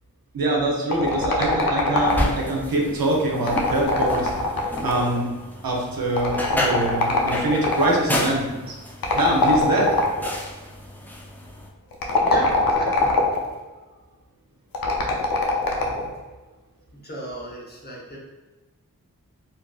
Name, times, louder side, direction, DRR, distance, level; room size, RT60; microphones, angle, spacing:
voice 1, 0.3-4.3 4.8-5.3 5.6-8.8 9.1-9.9, right 2 dB, 80° right, -1 dB, 0.6 m, -24 dB
sound 1, 0.9-2.5 3.3-5.2 6.2-8.0 9.0-10.3 11.9-13.5 14.7-16.1, left 2 dB, 85° left, 0.5 m, -22 dB
sound 2, 2.0-11.7, left 1 dB, 5° left, 0.4 m, -31 dB
voice 2, 12.2-13.1 13.4-14.0 16.9-18.2, equal, 30° left, -5 dB, 0.8 m, -36 dB
2.7 x 2.4 x 2.3 m, 1.2 s
cardioid pair, 45°, 35 cm